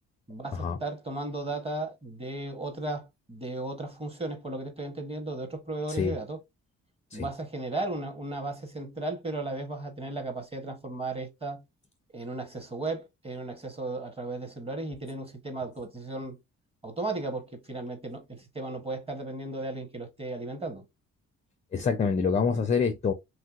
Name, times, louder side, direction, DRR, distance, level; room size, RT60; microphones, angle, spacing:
voice 1, 0.3-6.4 7.1-11.6 12.1-16.4 16.8-20.8, right 2 dB, 20° right, 0.9 m, -35 dB
voice 2, 21.7-23.1, left 5 dB, 25° left, 0.4 m, -26 dB
3.1 x 2.7 x 2.4 m
cardioid pair, 90°, 30 cm